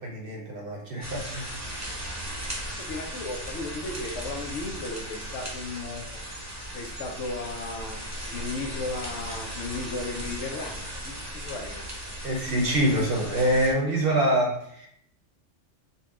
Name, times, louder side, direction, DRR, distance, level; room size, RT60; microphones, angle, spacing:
voice 1, 0.0-1.6 12.2-14.9, right 1 dB, 55° right, -1 dB, 0.8 m, -25 dB
sound 1, 1.0-13.7, right 1 dB, 15° right, 0.7 m, -37 dB
voice 2, 2.8-6.2 6.7-11.9, left 3 dB, 70° left, 3 dB, 0.9 m, -35 dB
4.0 x 2.2 x 3.6 m, 0.69 s
omnidirectional pair, 1.3 m